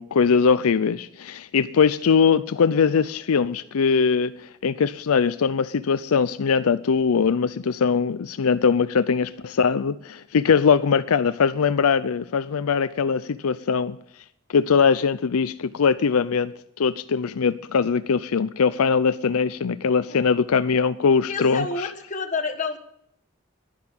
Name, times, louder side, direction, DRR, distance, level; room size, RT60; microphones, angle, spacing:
voice 1, 0.0-14.0 14.5-16.5 16.8-21.7, left 6 dB, 85° left, 0.5 m, -21 dB
voice 2, 21.3-22.8, left 4 dB, 35° left, 1.4 m, -28 dB
11.5 x 11.0 x 6.9 m
head